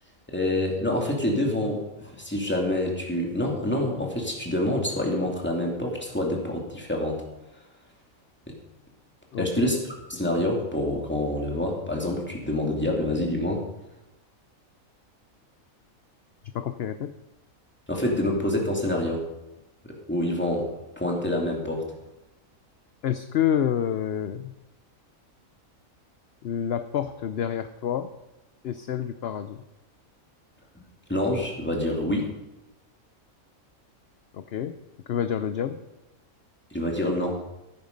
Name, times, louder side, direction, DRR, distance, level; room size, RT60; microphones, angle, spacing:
voice 1, 0.3-7.2 9.4-13.7 17.9-19.2 19.8-20.7 21.0-21.8 31.1-32.3 36.7-37.4, left 1 dB, 10° left, -1 dB, 2.6 m, -27 dB
voice 2, 16.5-17.1 23.0-24.5 26.4-28.1 28.6-29.6 34.3-34.8 35.1-35.8, left 9 dB, 60° left, 10 dB, 0.8 m, -28 dB
15.5 x 9.3 x 5.3 m, 0.96 s
omnidirectional pair, 1.4 m